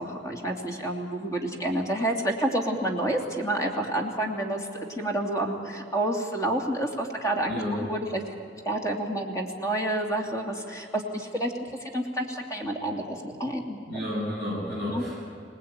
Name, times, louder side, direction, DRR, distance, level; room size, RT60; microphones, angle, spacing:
voice 1, 0.0-8.3 8.6-13.8 14.9-15.0, right 1 dB, 15° left, 1 dB, 2.7 m, -29 dB
voice 2, 7.5-7.8 13.9-15.2, left 1 dB, 55° left, -4 dB, 7.6 m, -31 dB
26.5 x 19.0 x 9.0 m, 2.7 s
head